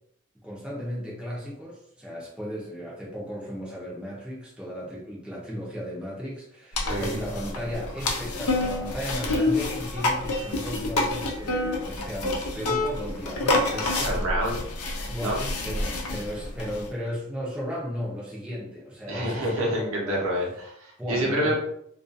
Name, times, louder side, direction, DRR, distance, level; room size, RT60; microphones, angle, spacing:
voice 1, 0.4-14.3 15.0-20.2 21.0-21.5, equal, 5° right, -5 dB, 0.5 m, -35 dB
sound 1, 6.7-16.9, left 2 dB, 90° left, 0.5 m, -28 dB
voice 2, 6.8-7.3 13.7-14.6 15.2-15.4 19.1-21.5, equal, 70° right, -3 dB, 0.8 m, -28 dB
2.5 x 2.3 x 2.5 m, 0.75 s
head